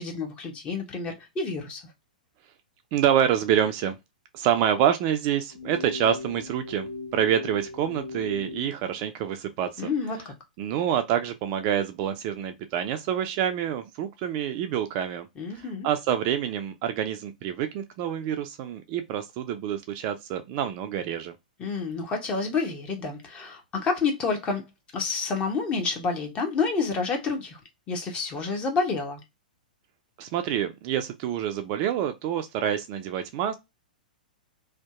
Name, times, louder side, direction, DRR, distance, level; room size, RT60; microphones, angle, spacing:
voice 1, 0.0-1.8 9.8-10.3 15.4-15.9 21.6-24.6 24.9-27.6 27.9-29.2, left 4 dB, 25° left, 0.7 m, -29 dB
voice 2, 2.9-4.0 4.3-9.9 10.6-15.3 15.5-21.3 30.2-33.6, right 10 dB, 35° right, 0.3 m, -27 dB
sound 1, 5.5-8.7, left 3 dB, 70° left, 1.4 m, -37 dB
2.6 x 2.2 x 2.3 m
figure-of-eight pair, 105°, 5 cm